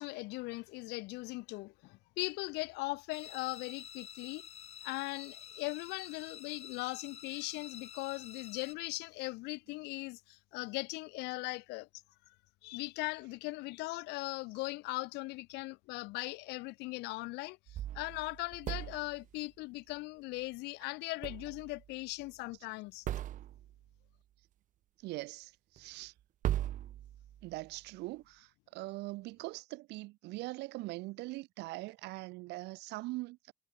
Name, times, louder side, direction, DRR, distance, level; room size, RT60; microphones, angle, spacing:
voice 1, 0.0-4.5 4.8-11.9 12.6-23.0, left 23 dB, 85° left, 0.4 m, -39 dB
sound 1, 3.1-8.7, left 8 dB, 40° left, 0.7 m, -50 dB
sound 2, 17.7-19.3 21.2-21.9 22.2-22.3 23.0-23.8 25.8-25.9 26.4-27.6, right 12 dB, 50° right, 0.5 m, -39 dB
voice 2, 25.0-26.1 27.4-33.5, right 21 dB, 90° right, 1.8 m, -42 dB
cardioid pair, 110°, 17 cm